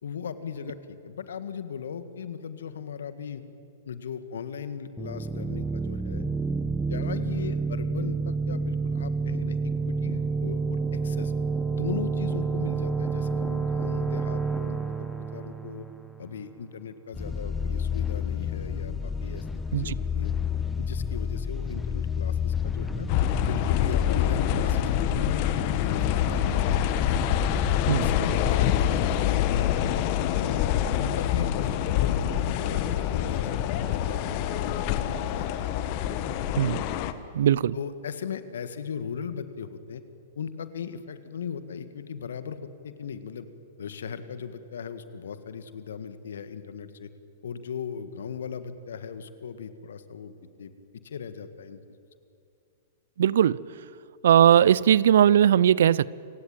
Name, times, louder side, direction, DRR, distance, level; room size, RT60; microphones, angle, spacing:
voice 1, 0.0-3.4 3.8-6.2 6.9-10.8 11.0-11.3 11.7-15.9 16.2-20.3 20.8-23.1 23.4-26.6 27.0-27.5 27.9-30.6 31.0-37.1 37.7-40.0 40.3-43.5 43.8-47.1 47.4-50.7 51.0-51.8, left 7 dB, 70° left, 11 dB, 1.7 m, -38 dB
sound 1, 5.0-16.5, right 4 dB, 5° right, 1.5 m, -29 dB
sound 2, 17.1-28.5, left 6 dB, 15° left, 0.9 m, -31 dB
sound 3, 23.1-37.1, left 10 dB, 45° left, 1.4 m, -26 dB
voice 2, 37.3-37.8 53.2-53.6 54.2-56.1, right 10 dB, 65° right, 22 dB, 0.5 m, -19 dB
28.5 x 17.0 x 9.0 m, 2.5 s
figure-of-eight pair, 105°, 0 cm